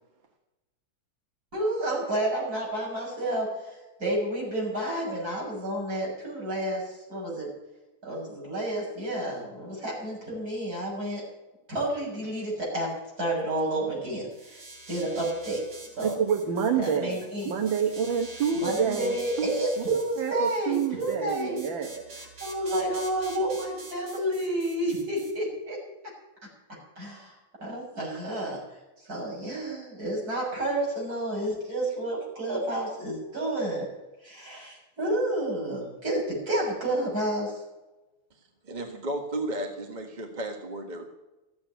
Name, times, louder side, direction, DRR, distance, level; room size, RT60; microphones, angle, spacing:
voice 1, 1.5-7.5 8.0-11.3 11.7-16.1 16.8-17.5 18.6-21.6 22.4-25.8 27.0-27.4 27.6-28.6 29.0-33.9 34.2-37.6, right 1 dB, 45° right, -4 dB, 7.4 m, -30 dB
sound 1, 14.3-25.3, right 2 dB, 85° right, 4.4 m, -46 dB
voice 2, 16.0-19.8 20.2-22.2, right 6 dB, 70° right, 4 dB, 2.0 m, -28 dB
voice 3, 38.6-41.1, right 1 dB, 25° right, 3 dB, 1.4 m, -33 dB
14.5 x 8.7 x 9.4 m, 1.1 s
omnidirectional pair, 2.3 m